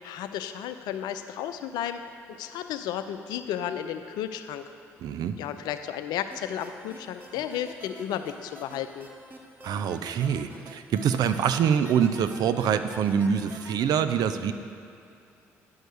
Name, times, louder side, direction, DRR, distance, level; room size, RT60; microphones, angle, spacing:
voice 1, 0.0-4.7 5.4-9.1, left 10 dB, 70° left, 9 dB, 0.5 m, -33 dB
voice 2, 5.0-5.4 9.6-14.5, right 8 dB, 65° right, 10 dB, 0.5 m, -25 dB
sound 1, 6.3-13.8, right 1 dB, 25° right, 1.5 m, -45 dB
9.4 x 5.4 x 6.3 m, 2.7 s
hypercardioid pair, 50°, 7 cm